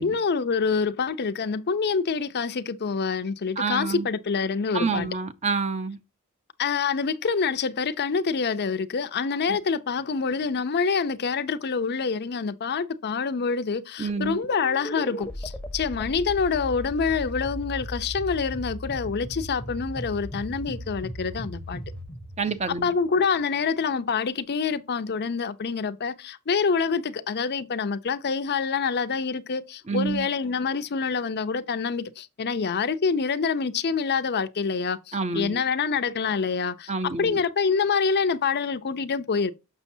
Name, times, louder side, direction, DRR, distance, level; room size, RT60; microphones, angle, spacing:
voice 1, 0.0-5.1 6.6-21.8 22.8-36.9 37.2-39.5, left 5 dB, 45° left, 0.6 m, -26 dB
voice 2, 3.6-4.1 4.7-6.0 9.5-9.6 14.0-14.4 22.4-22.9 29.9-30.3 35.1-35.6 36.9-37.4, right 4 dB, 30° right, 0.6 m, -28 dB
sound 1, 14.1-23.4, left 1 dB, 5° left, 0.8 m, -37 dB
7.1 x 6.2 x 2.7 m
head